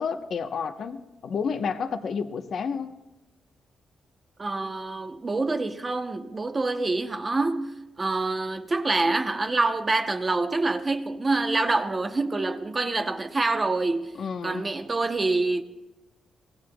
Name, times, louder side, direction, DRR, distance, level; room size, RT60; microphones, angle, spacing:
voice 1, 0.0-3.0 14.1-14.6, left 6 dB, 60° left, 0.9 m, -30 dB
voice 2, 4.4-14.1 14.4-15.6, right 3 dB, 25° right, 0.8 m, -26 dB
24.0 x 19.5 x 2.3 m
cardioid pair, 115°, 0 cm